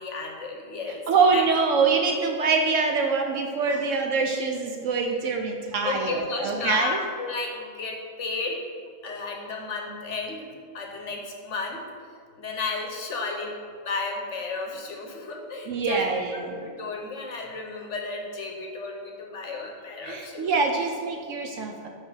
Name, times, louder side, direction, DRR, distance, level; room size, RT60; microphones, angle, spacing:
voice 1, 0.0-1.0 1.3-1.4 3.7-3.9 5.8-8.6 9.0-10.5 10.7-11.8 12.4-16.0 16.3-20.6, left 3 dB, 60° left, 1 dB, 1.0 m, -33 dB
voice 2, 1.1-7.0 15.7-16.6 20.0-21.9, right 4 dB, 65° right, 3 dB, 0.8 m, -24 dB
5.1 x 5.0 x 5.5 m, 2.2 s
omnidirectional pair, 1.6 m